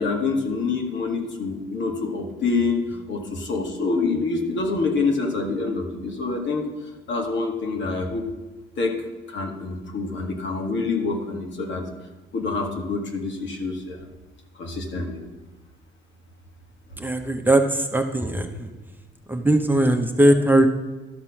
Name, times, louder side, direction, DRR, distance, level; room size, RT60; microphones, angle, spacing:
voice 1, 0.0-6.7 7.1-8.2 8.8-9.0 9.3-11.8 12.3-14.1 14.6-15.2, left 3 dB, 65° left, 2 dB, 1.9 m, -26 dB
voice 2, 17.0-18.7 19.3-20.7, right 1 dB, 10° right, 4 dB, 1.0 m, -20 dB
12.5 x 6.0 x 5.9 m, 1.2 s
cardioid pair, 90°, 20 cm